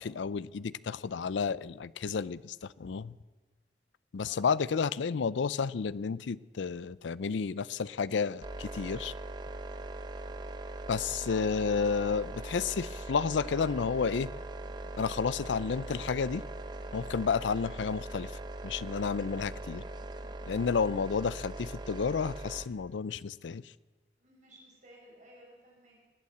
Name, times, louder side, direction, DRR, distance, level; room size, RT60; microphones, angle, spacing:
voice 1, 0.0-3.1 4.1-9.1 10.9-14.3 15.0-16.4 16.9-18.3 18.6-19.8 20.5-23.6, left 5 dB, 80° left, 19 dB, 0.4 m, -31 dB
voice 2, 4.2-4.5 24.2-26.1, right 1 dB, 40° right, -3 dB, 6.1 m, -57 dB
sound 1, 8.4-22.7, right 2 dB, 25° right, 0.8 m, -41 dB
21.0 x 8.5 x 7.8 m, 1.3 s
head